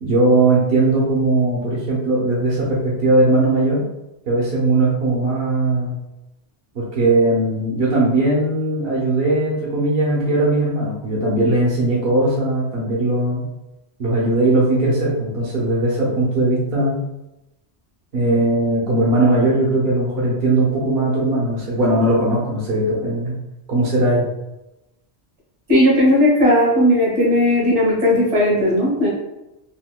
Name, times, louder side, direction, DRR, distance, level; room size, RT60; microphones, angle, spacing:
voice 1, 0.0-3.8 4.3-6.0 6.7-13.4 14.0-17.0 18.1-23.4 23.7-24.3, right 2 dB, 60° right, -5 dB, 0.9 m, -19 dB
voice 2, 25.7-29.1, left 1 dB, 80° right, -5 dB, 1.6 m, -16 dB
3.5 x 2.6 x 2.2 m, 0.95 s
omnidirectional pair, 1.2 m